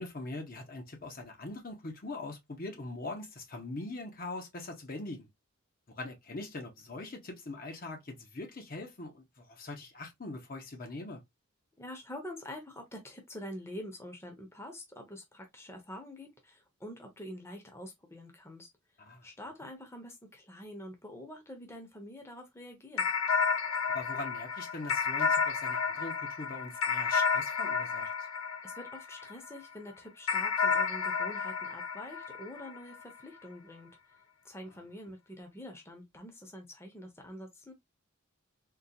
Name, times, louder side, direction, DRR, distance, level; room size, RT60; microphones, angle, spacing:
voice 1, 0.0-5.3 5.9-11.2 19.0-19.3 23.9-28.1, left 2 dB, 40° left, 0.8 m, -42 dB
voice 2, 11.8-18.7 19.2-23.1 28.6-33.9 34.4-37.7, left 1 dB, 10° left, 0.8 m, -46 dB
sound 1, 23.0-29.6 30.3-33.0, left 5 dB, 75° left, 0.6 m, -31 dB
3.7 x 2.4 x 2.7 m
head